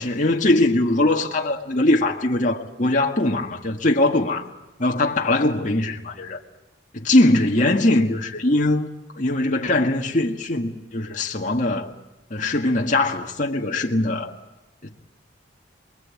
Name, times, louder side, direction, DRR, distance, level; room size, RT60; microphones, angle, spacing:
voice 1, 0.0-4.5 4.8-6.4 6.9-8.9 9.1-11.9 12.3-14.3, left 2 dB, 45° left, 1.8 m, -21 dB
27.5 x 21.5 x 8.6 m
head